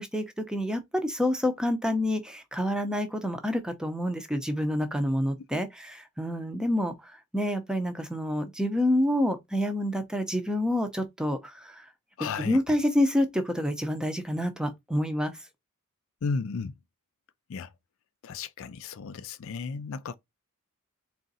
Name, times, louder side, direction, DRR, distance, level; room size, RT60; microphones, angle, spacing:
voice 1, 0.0-11.9 12.4-15.3, left 1 dB, 5° right, 0.6 m, -28 dB
voice 2, 12.2-12.6 16.2-16.8 17.5-17.7 18.2-20.2, left 5 dB, 60° left, 0.4 m, -34 dB
3.7 x 2.5 x 4.0 m
head